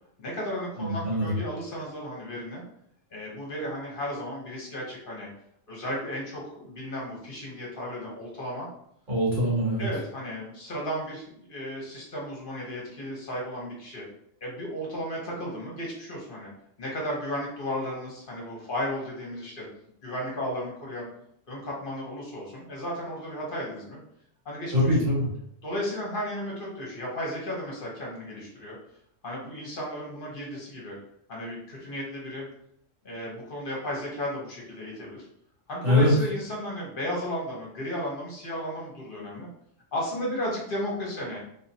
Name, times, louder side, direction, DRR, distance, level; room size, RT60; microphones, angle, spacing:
voice 1, 0.2-2.6 3.1-5.3 5.7-8.7 9.8-14.0 14.4-16.5 16.8-19.7 20.0-21.1 21.5-24.0 24.4-24.7 25.6-28.8 29.2-31.0 31.3-32.5 33.0-35.3 35.7-39.5 39.9-41.4, left 1 dB, 50° left, -3 dB, 1.0 m, -34 dB
voice 2, 0.8-1.4 9.1-9.9 24.7-25.3 35.8-36.1, left 1 dB, 80° right, -7 dB, 2.1 m, -23 dB
3.6 x 2.8 x 2.7 m, 0.70 s
omnidirectional pair, 1.3 m